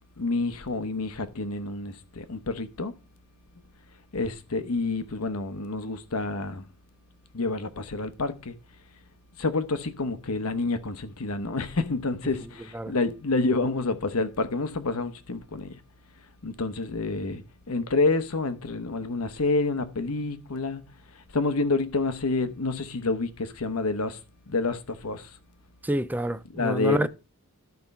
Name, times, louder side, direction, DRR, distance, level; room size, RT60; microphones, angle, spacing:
voice 1, 0.2-2.9 4.1-6.6 7.3-8.5 9.4-15.7 16.4-20.8 21.3-24.2 24.5-25.3 26.5-27.1, left 3 dB, 85° left, 1.0 m, -28 dB
voice 2, 25.8-27.1, right 1 dB, 10° right, 0.4 m, -28 dB
12.0 x 4.4 x 5.4 m
head